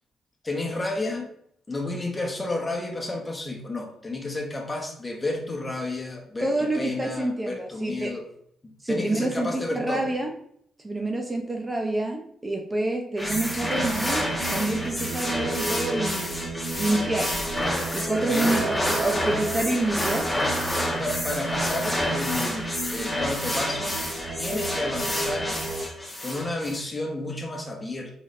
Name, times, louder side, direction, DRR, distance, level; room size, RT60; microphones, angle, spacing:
voice 1, 0.4-1.3 1.7-8.2 8.9-10.1 18.2-18.7 20.9-24.0 24.4-25.6 26.2-28.1, left 2 dB, 25° left, 1 dB, 1.2 m, -31 dB
voice 2, 6.4-8.1 8.8-10.3 10.8-16.4 16.8-17.3 17.9-20.3, right 2 dB, 20° right, 2 dB, 0.7 m, -27 dB
sound 1, 13.2-26.8, left 1 dB, 5° left, 1.3 m, -29 dB
Singing, 13.2-25.9, right 3 dB, 75° right, 0.9 m, -34 dB
4.0 x 3.9 x 3.2 m, 0.69 s
supercardioid pair, 60°, 0 cm